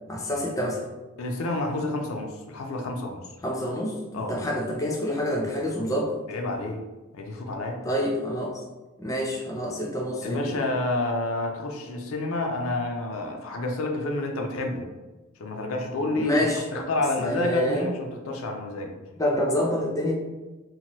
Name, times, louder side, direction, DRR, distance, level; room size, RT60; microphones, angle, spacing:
voice 1, 0.1-0.8 3.4-6.2 7.8-8.6 9.0-10.6 16.2-16.6 17.2-17.9 19.2-20.1, equal, 15° left, -2 dB, 0.4 m, -27 dB
voice 2, 1.2-3.3 4.1-4.4 6.3-6.8 7.1-7.8 10.2-14.9 15.4-16.4 16.7-19.0, left 2 dB, 80° left, 3 dB, 0.4 m, -29 dB
2.8 x 2.2 x 2.9 m, 1.2 s
head